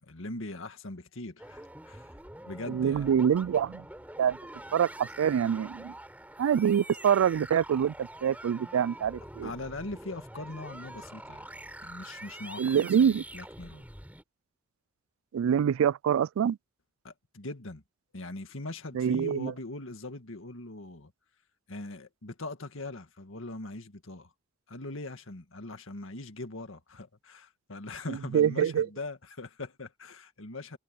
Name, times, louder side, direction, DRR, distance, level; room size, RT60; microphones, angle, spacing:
voice 1, 0.0-2.1 2.5-3.1 9.4-13.9 17.0-17.8 18.1-21.1 21.7-24.3 24.7-30.8, left 2 dB, 75° left, 1.9 m, -41 dB
sound 1, 1.4-14.2, right 1 dB, 10° right, 4.0 m, -45 dB
voice 2, 2.7-3.8 4.2-4.4 4.7-5.9 6.4-9.5 12.6-13.2 15.3-16.6 18.9-19.5 28.1-28.9, right 8 dB, 85° right, 0.3 m, -25 dB
head